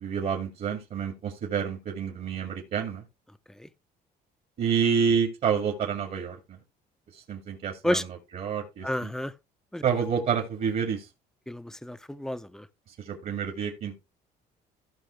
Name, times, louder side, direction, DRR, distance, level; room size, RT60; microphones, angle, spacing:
voice 1, 0.0-3.0 4.6-6.6 7.1-8.0 8.3-9.1 9.8-11.1 13.0-13.9, right 7 dB, 55° right, 2.4 m, -28 dB
voice 2, 8.8-9.3 9.7-9.8 11.5-12.7, left 1 dB, 5° left, 0.6 m, -31 dB
15.5 x 5.5 x 3.3 m
cardioid pair, 110°, 17 cm